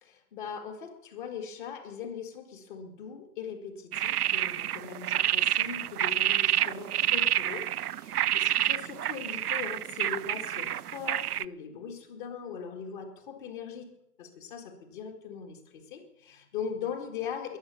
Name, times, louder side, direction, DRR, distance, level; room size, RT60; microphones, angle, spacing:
voice 1, 0.0-13.9 14.2-17.6, left 7 dB, 30° left, 4 dB, 2.0 m, -40 dB
sound 1, 3.9-11.5, right 12 dB, 70° right, 0.5 m, -28 dB
21.0 x 7.5 x 6.9 m, 0.83 s
hypercardioid pair, 145°, 46 cm